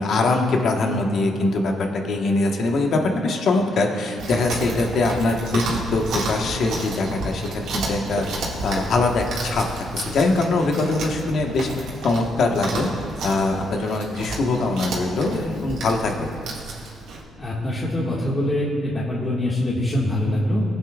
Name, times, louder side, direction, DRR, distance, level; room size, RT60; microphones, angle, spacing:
voice 1, 0.0-9.6 9.9-12.9 13.2-16.3, left 3 dB, 65° left, 2 dB, 1.3 m, -22 dB
Chewing mastication, 4.2-17.2, right 2 dB, 85° right, 1.9 m, -31 dB
voice 2, 17.4-20.6, left 1 dB, 25° left, -7 dB, 1.8 m, -23 dB
19.0 x 8.5 x 2.4 m, 2.4 s
cardioid pair, 90°, 0 cm